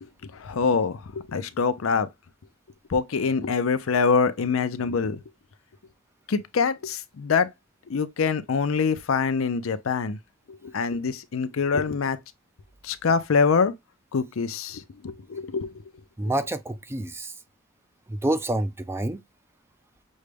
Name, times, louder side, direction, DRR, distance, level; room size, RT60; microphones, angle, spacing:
voice 1, 0.0-2.1 2.9-5.2 6.3-7.5 7.9-10.2 10.5-12.2 12.8-13.7 14.1-15.7 16.3-16.4, left 5 dB, 75° left, 0.5 m, -25 dB
voice 2, 16.2-17.3 18.1-19.2, right 1 dB, 10° right, 0.4 m, -27 dB
6.3 x 2.2 x 3.3 m
head